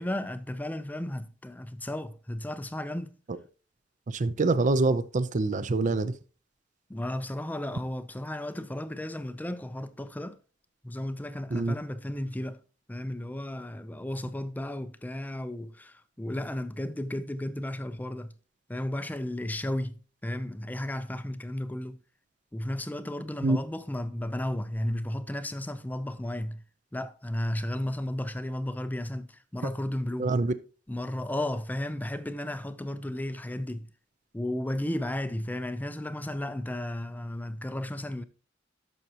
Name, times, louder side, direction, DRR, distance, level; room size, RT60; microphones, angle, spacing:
voice 1, 0.0-3.1 6.9-10.4 10.8-12.6 12.9-18.3 18.7-22.0 22.5-26.6 26.9-30.3 30.9-33.9 34.3-38.2, left 1 dB, 10° left, 0.4 m, -34 dB
voice 2, 4.1-6.1 11.5-11.8 23.4-23.6 30.2-30.5, right 3 dB, 40° right, 0.5 m, -25 dB
11.0 x 6.6 x 2.8 m
head